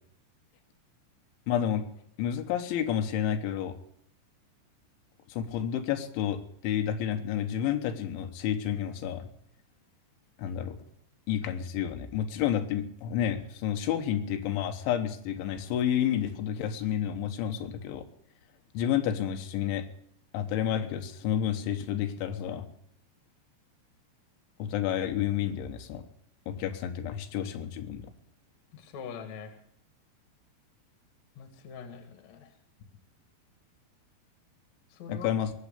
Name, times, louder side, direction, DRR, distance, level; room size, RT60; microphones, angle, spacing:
voice 1, 1.5-1.9 2.2-3.8 5.3-9.3 10.4-10.8 11.3-18.1 18.8-19.9 20.3-22.7 24.6-26.0 26.5-28.1 35.1-35.5, left 10 dB, 90° left, 6 dB, 3.6 m, -30 dB
voice 2, 28.7-29.5 31.4-32.5 34.9-35.3, left 6 dB, 50° left, 7 dB, 2.5 m, -43 dB
20.5 x 8.6 x 6.9 m, 0.69 s
omnidirectional pair, 5.3 m